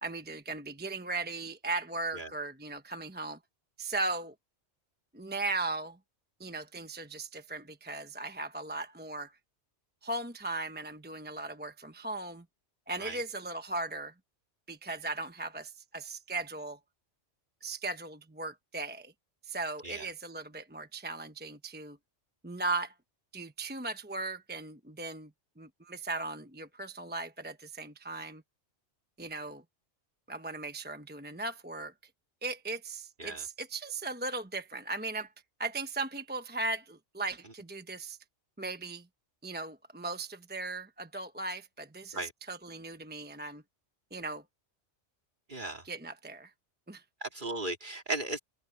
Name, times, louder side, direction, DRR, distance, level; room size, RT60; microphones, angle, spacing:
voice 1, 0.0-3.4 3.8-4.3 5.1-6.0 6.4-9.3 10.0-12.4 12.9-14.1 14.7-16.8 17.6-19.1 19.4-22.0 22.4-22.9 23.3-25.3 25.6-28.4 29.2-29.6 30.3-31.9 32.4-35.3 35.6-38.2 38.6-39.1 39.4-43.6 44.1-44.4 45.8-46.5 46.9-47.0, right 2 dB, 10° right, 1.0 m, -37 dB
voice 2, 45.5-45.8 47.2-48.4, right 2 dB, 40° right, 3.0 m, -36 dB
omnidirectional pair, 1.2 m